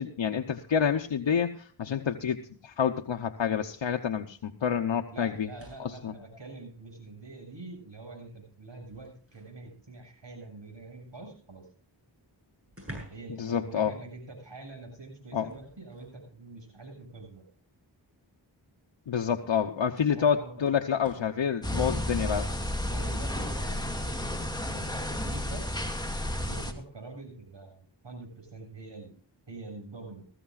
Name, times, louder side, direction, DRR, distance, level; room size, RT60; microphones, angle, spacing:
voice 1, 0.0-5.5 5.8-6.1 13.4-13.9 15.3-15.5 19.1-22.5, left 7 dB, 80° left, 3 dB, 0.9 m, -28 dB
voice 2, 5.1-11.7 13.1-17.5 20.1-20.6 21.2-21.3 22.6-24.3 24.6-25.7 26.4-29.1 29.5-30.2, right 3 dB, 70° right, 3 dB, 7.3 m, -45 dB
sound 1, 5.3-6.1 7.4-7.5 8.0-9.6 11.7-11.8 12.0-12.1 12.7-13.4 13.7-13.9 15.5-16.2 17.3-17.4 19.0-19.1 20.0-21.4 24.8-25.1, right 1 dB, 30° right, 7.9 m, -50 dB
sound 2, 21.6-26.7, left 1 dB, 10° left, 2.1 m, -32 dB
20.0 x 15.0 x 2.4 m, 0.43 s
wide cardioid pair, 45°, 45 cm